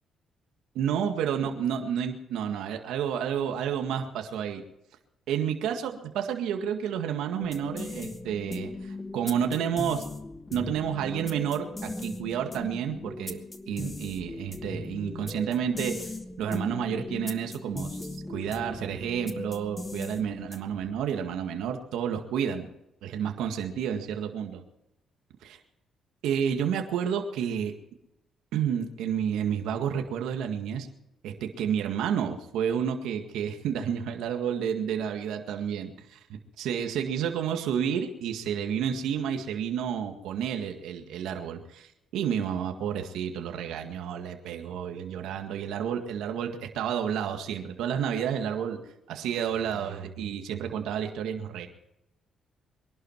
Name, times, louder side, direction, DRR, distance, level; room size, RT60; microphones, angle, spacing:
voice 1, 0.8-4.6 5.3-10.0 10.5-13.4 13.7-16.1 16.4-18.0 18.3-22.7 23.0-24.6 25.4-25.6 26.2-27.7 28.5-30.9 31.2-48.8 49.1-51.7, right 8 dB, 85° right, 4 dB, 1.9 m, -30 dB
sound 1, 7.4-20.8, left 2 dB, 20° left, 1.4 m, -38 dB
23.0 x 11.5 x 4.6 m, 0.85 s
cardioid pair, 90°, 0 cm